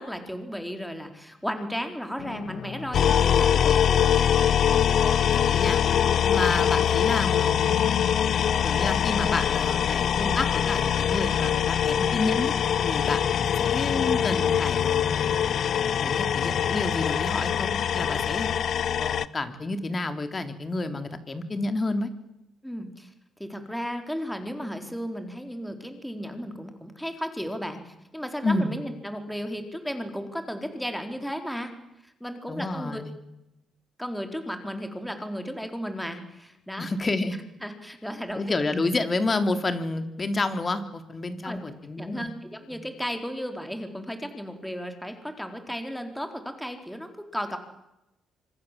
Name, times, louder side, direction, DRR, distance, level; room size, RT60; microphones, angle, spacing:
voice 1, 0.0-4.0 22.6-23.1 23.4-31.7 32.0-33.0 34.0-36.9 37.6-38.4 41.4-41.6 42.0-47.6, equal, ahead, 6 dB, 4.1 m, -34 dB
sound 1, 2.1-18.6, left 8 dB, 75° left, 1.8 m, -38 dB
sound 2, 2.9-19.3, left 9 dB, 60° left, 0.9 m, -23 dB
voice 2, 5.1-5.8 6.3-7.8 8.3-12.5 12.8-15.3 16.0-18.5 19.0-22.1 28.4-28.7 32.5-33.1 36.8-37.4 38.3-42.3 42.7-42.8, left 2 dB, 30° left, 9 dB, 3.4 m, -30 dB
25.5 x 25.5 x 7.6 m, 0.89 s
cardioid pair, 90°, 0 cm